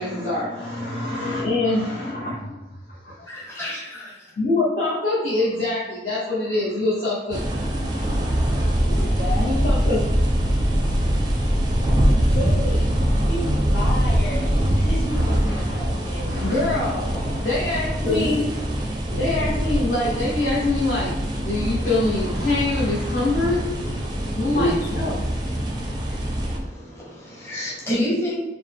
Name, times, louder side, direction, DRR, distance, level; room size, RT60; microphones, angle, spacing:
voice 1, 0.0-2.6 2.9-3.2 3.6-3.7 4.4-7.4 9.4-10.0 15.1-15.8 16.2-17.0 17.4-18.4 19.1-23.7 24.4-25.1, left 2 dB, 50° left, -8 dB, 0.9 m, -24 dB
voice 2, 3.3-4.3 8.7-9.2 18.0-18.3 24.5-24.8 26.5-28.4, left 1 dB, 15° left, -7 dB, 1.1 m, -28 dB
sound 1, 7.3-26.6, equal, 25° right, 0.5 m, -23 dB
voice 3, 8.9-9.5 12.3-17.5, left 1 dB, 70° left, -5 dB, 1.5 m, -33 dB
5.0 x 2.1 x 3.5 m, 1.0 s
head